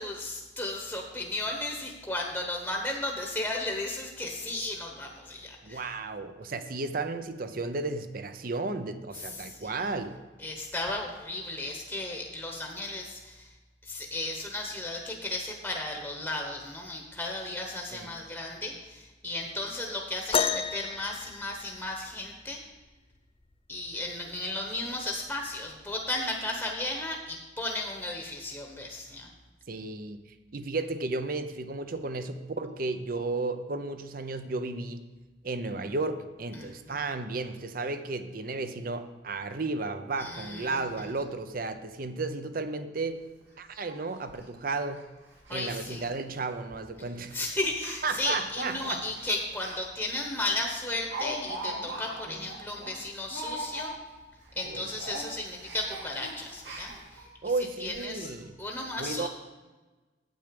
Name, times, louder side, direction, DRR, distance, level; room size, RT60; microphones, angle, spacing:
voice 1, 0.0-5.9 9.2-9.7 10.4-13.5 13.8-22.6 23.7-29.3 36.5-37.0 40.2-41.1 45.5-46.1 47.3-53.9 54.5-57.3 57.8-58.3 58.6-59.3, left 2 dB, 10° left, 1 dB, 1.0 m, -35 dB
voice 2, 5.6-10.1 17.9-18.1 29.7-30.2 30.5-35.1 35.4-43.2 43.6-45.0 45.5-47.4 48.0-49.0 52.3-52.5 54.6-54.9 57.4-58.5 59.0-59.3, right 3 dB, 50° right, 10 dB, 0.7 m, -33 dB
sound 1, 20.3-22.2 23.9-24.0 24.8-25.0 25.9-26.0, left 6 dB, 30° left, 0.3 m, -31 dB
Speech, 43.4-43.5 43.9-44.0 44.3-44.4 44.9-45.0 45.3-45.6 45.8-46.0 46.7-47.0 47.7-49.8 50.2-50.3 50.6-54.2 54.5-54.7 55.0-57.3 57.8-57.9 58.2-58.3, right 1 dB, 85° right, 2.5 m, -40 dB
9.0 x 8.2 x 5.2 m, 1.2 s
head